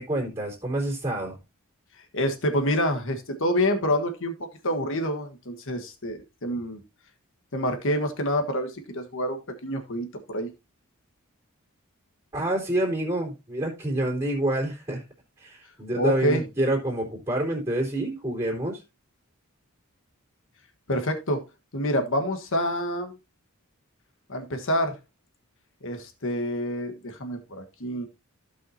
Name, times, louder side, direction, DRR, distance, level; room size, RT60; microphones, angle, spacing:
voice 1, 0.0-1.4 12.3-15.0 15.4-18.8, right 1 dB, 20° right, 3.5 m, -27 dB
voice 2, 2.1-4.3 4.6-6.8 7.5-10.5 15.9-16.4 20.9-21.4 21.7-23.1 24.3-24.9 25.8-28.1, equal, 60° left, 1.5 m, -27 dB
15.5 x 5.7 x 2.8 m
head